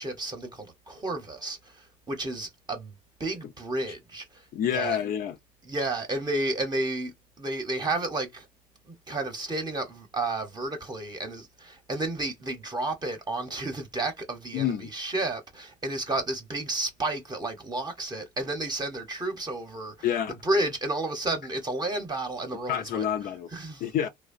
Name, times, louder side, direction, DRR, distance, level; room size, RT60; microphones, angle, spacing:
voice 1, 0.0-5.0 5.7-8.5 8.8-20.1 20.4-23.1 23.5-23.8, right 2 dB, 25° right, 0.7 m, -32 dB
voice 2, 4.5-5.4 14.5-14.9 20.0-20.3 22.7-23.5 23.8-24.1, left 9 dB, 60° left, 0.4 m, -28 dB
2.7 x 2.0 x 2.4 m
cardioid pair, 110°, 17 cm